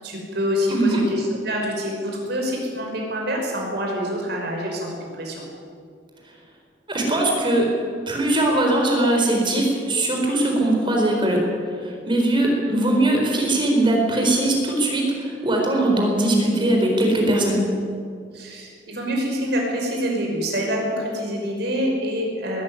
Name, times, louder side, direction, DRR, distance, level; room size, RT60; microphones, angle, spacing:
voice 1, 0.0-5.4 18.3-22.6, equal, 60° right, 0 dB, 5.7 m, -26 dB
voice 2, 0.7-1.0 6.9-7.7 8.1-11.4 11.8-17.6, right 1 dB, 25° right, 0 dB, 4.4 m, -20 dB
21.5 x 14.0 x 9.8 m, 2.2 s
head